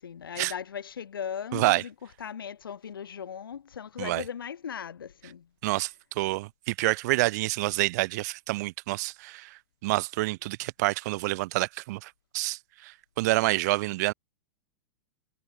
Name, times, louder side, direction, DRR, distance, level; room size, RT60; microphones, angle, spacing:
voice 1, 0.0-1.9 2.2-5.5, left 8 dB, 75° left, 1.8 m, -38 dB
voice 2, 1.5-1.8 4.0-4.2 5.6-14.1, right 20 dB, 50° right, 0.4 m, -28 dB
figure-of-eight pair, 100°, 12 cm